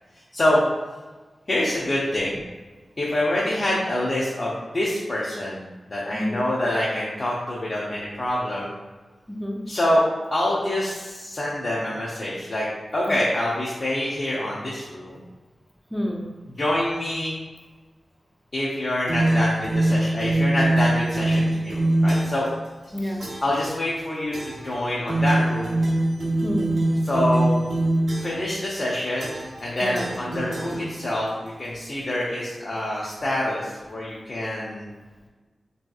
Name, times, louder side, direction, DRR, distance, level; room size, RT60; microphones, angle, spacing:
voice 1, 1.5-2.4 3.0-8.7 9.7-10.0 10.3-12.7 12.9-15.2 16.5-17.3 18.5-22.5 23.0-25.8 27.0-27.6 28.2-29.3 29.6-34.9, left 1 dB, 45° left, -6 dB, 0.5 m, -26 dB
voice 2, 6.1-6.4 9.3-9.6 13.1-13.2 15.9-16.2 22.9-23.2 26.4-26.8 29.8-30.1, equal, ahead, -1 dB, 0.5 m, -28 dB
sound 1, 19.1-22.5 23.2-23.6 24.3-24.7 25.1-28.5 29.2-29.6 29.9-31.3, right 1 dB, 70° right, 0.7 m, -23 dB
3.3 x 2.7 x 2.3 m, 1.3 s
wide cardioid pair, 95°, 0 cm